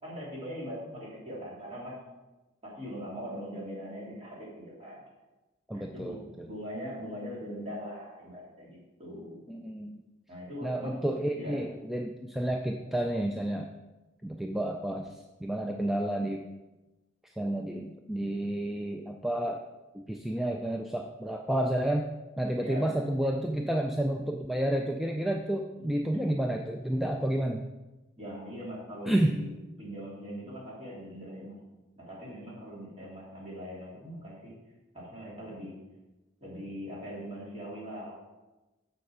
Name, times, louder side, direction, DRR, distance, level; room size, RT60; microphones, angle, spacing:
voice 1, 0.0-2.0 2.6-5.0 5.7-9.4 10.3-10.9 11.3-11.6 22.6-23.0 25.8-25.9 28.2-29.5 29.8-31.5 32.0-34.5 34.9-35.7 36.4-38.2, equal, 30° right, -6 dB, 3.1 m, -41 dB
voice 2, 5.7-6.5 9.5-10.0 10.6-13.7 14.2-16.4 17.2-19.6 19.9-22.1 22.4-27.6 29.1-29.4, right 1 dB, ahead, 2 dB, 0.3 m, -30 dB
6.9 x 6.6 x 4.9 m, 1.1 s
head